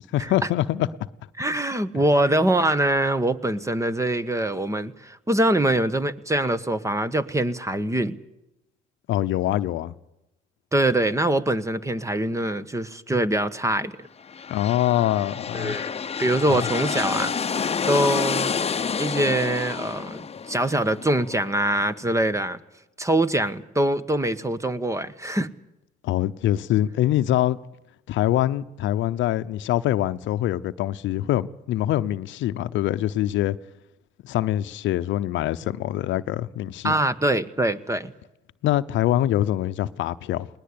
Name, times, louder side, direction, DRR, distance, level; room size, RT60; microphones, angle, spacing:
voice 1, 0.1-0.9 9.1-9.9 14.5-15.8 16.5-16.6 26.0-27.6 28.1-33.6 34.2-36.9 38.6-40.5, left 13 dB, 75° left, 0.8 m, -24 dB
voice 2, 1.4-8.2 10.7-14.1 15.5-18.6 19.0-22.6 23.0-25.5 36.8-38.1, right 1 dB, 15° right, 1.4 m, -24 dB
sound 1, 14.2-21.9, left 6 dB, 30° left, 1.0 m, -29 dB
20.0 x 20.0 x 8.6 m
supercardioid pair, 75°, 20 cm